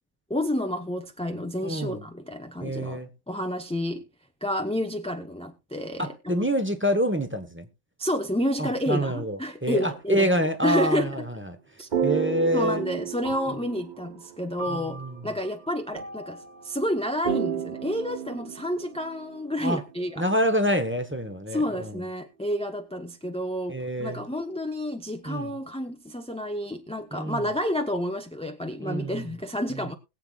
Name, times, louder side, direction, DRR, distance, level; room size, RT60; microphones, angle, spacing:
voice 1, 0.3-4.0 4.4-6.4 8.0-10.3 10.6-11.3 11.8-11.9 12.5-20.2 21.5-30.0, equal, 5° left, 0.7 m, -30 dB
voice 2, 1.6-2.0 2.6-3.1 6.0-7.7 8.6-9.4 9.6-11.6 12.0-12.8 14.7-15.2 19.6-19.8 20.2-22.0 23.7-24.2 25.3-25.5 27.1-27.4 28.8-29.3, equal, 10° right, 1.0 m, -27 dB
sound 1, 11.9-20.4, right 8 dB, 45° right, 0.9 m, -33 dB
21.0 x 7.9 x 2.3 m
omnidirectional pair, 1.2 m